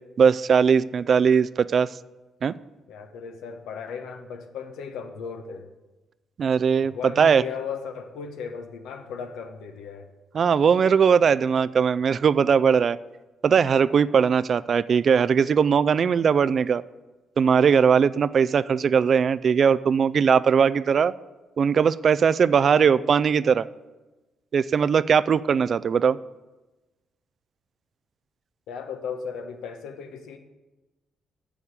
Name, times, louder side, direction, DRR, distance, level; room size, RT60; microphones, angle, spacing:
voice 1, 0.2-1.9 2.4-2.5 6.4-7.4 10.3-13.0 13.4-16.8 17.4-21.1 21.6-23.7 24.5-26.2, right 6 dB, 50° right, 16 dB, 0.3 m, -20 dB
voice 2, 2.9-5.7 6.8-10.1 28.7-30.4, left 6 dB, 85° left, 6 dB, 1.0 m, -36 dB
7.3 x 7.0 x 8.2 m, 1.1 s
cardioid pair, 90°, 0 cm